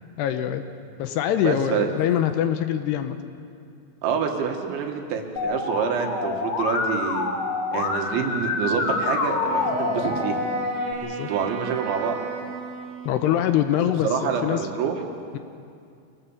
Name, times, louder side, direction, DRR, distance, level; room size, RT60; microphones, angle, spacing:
voice 1, 0.2-0.6 1.0-3.2 11.0-11.3 13.0-14.6 15.3-15.4, left 10 dB, 75° left, 8 dB, 2.7 m, -24 dB
voice 2, 1.4-1.9 4.0-7.3 7.7-10.5 11.3-12.2 14.0-15.0, right 6 dB, 85° right, 3 dB, 4.1 m, -27 dB
Musical instrument, 5.4-10.9, left 3 dB, 55° left, 2.3 m, -27 dB
Wind instrument woodwind instrument, 9.4-13.6, right 6 dB, 60° right, 3.3 m, -35 dB
25.0 x 19.0 x 7.2 m, 2.4 s
omnidirectional pair, 5.1 m